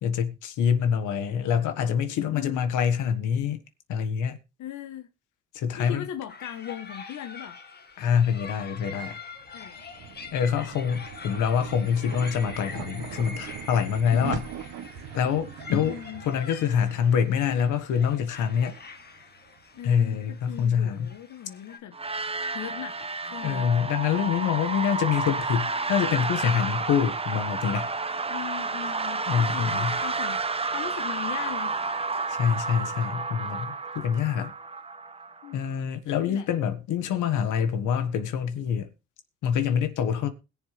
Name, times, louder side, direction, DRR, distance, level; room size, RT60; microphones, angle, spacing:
voice 1, 0.0-3.6 3.9-4.4 5.5-6.0 8.0-9.2 10.3-14.4 15.1-16.0 16.2-18.7 19.8-21.1 23.4-27.9 29.3-30.0 32.3-34.5 35.5-38.9 39.4-40.3, left 7 dB, 85° left, 1.6 m, -25 dB
voice 2, 2.3-2.6 4.6-5.1 5.8-7.6 9.5-9.8 14.1-14.4 15.8-16.2 19.7-21.9 22.5-23.7 28.3-31.8 35.4-35.7 36.3-36.5, left 10 dB, 70° left, 1.2 m, -39 dB
sound 1, 6.3-21.8, left 4 dB, 35° left, 1.8 m, -44 dB
sound 2, 9.3-19.8, right 9 dB, 85° right, 1.5 m, -42 dB
sound 3, 21.9-35.6, right 3 dB, 20° right, 0.8 m, -30 dB
21.0 x 7.2 x 3.4 m
cardioid pair, 90°, 30 cm